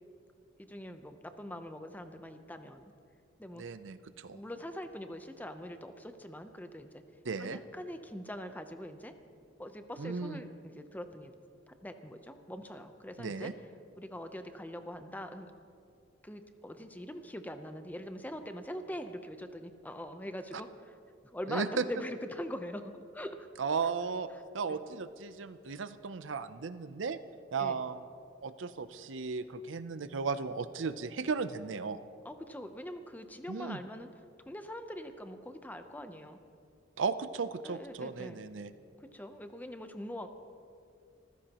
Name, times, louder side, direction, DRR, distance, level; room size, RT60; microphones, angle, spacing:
voice 1, 0.7-2.8 3.4-3.6 4.3-7.0 7.4-9.1 9.6-11.3 11.7-13.5 14.0-15.5 16.2-21.0 21.3-23.5 23.8-23.9 24.7-24.8 27.6-27.8 32.2-34.1 34.4-36.4 37.6-38.4 39.0-40.3, equal, 10° left, 8 dB, 0.7 m, -43 dB
voice 2, 3.6-4.4 7.2-7.6 10.0-10.4 13.2-13.5 21.5-21.8 23.6-24.3 24.5-27.2 27.5-28.0 28.4-32.0 33.5-33.8 37.0-38.7, right 5 dB, 85° right, 12 dB, 0.6 m, -35 dB
26.0 x 15.0 x 3.0 m, 2.5 s
head